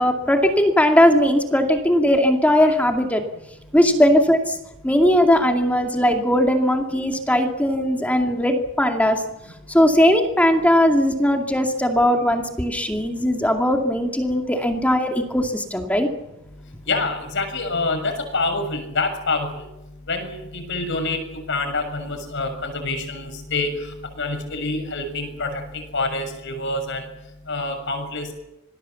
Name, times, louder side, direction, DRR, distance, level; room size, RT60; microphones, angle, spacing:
voice 1, 0.0-3.2 3.7-4.6 4.8-9.2 9.7-16.1, equal, 5° left, 3 dB, 2.3 m, -19 dB
voice 2, 16.9-19.5 20.1-21.2 21.5-23.8 24.2-25.6 25.9-27.0 27.5-28.3, left 3 dB, 60° left, 6 dB, 6.7 m, -26 dB
27.0 x 19.5 x 7.2 m, 0.92 s
head